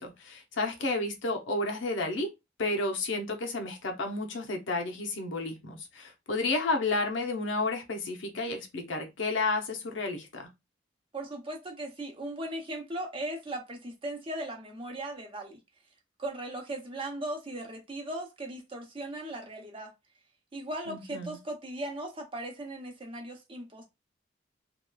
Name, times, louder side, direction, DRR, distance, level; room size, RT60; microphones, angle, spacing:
voice 1, 0.0-2.3 2.6-10.5 20.9-21.4, left 2 dB, 85° left, 0.7 m, -31 dB
voice 2, 11.1-15.6 16.2-19.9 20.5-23.8, right 1 dB, 30° right, 0.7 m, -38 dB
2.9 x 2.3 x 2.2 m
head